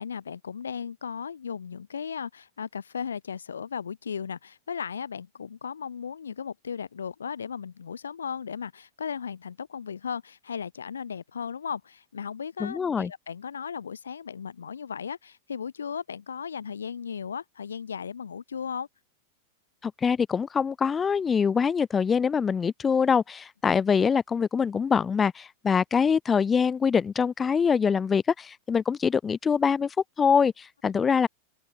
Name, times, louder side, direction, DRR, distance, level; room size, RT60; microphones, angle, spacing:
voice 1, 0.0-18.9 30.8-30.9, left 7 dB, 70° left, 1.0 m, -36 dB
voice 2, 12.6-13.1 19.8-31.3, left 6 dB, 20° left, 1.1 m, -24 dB
open air
figure-of-eight pair, 90°, 0 cm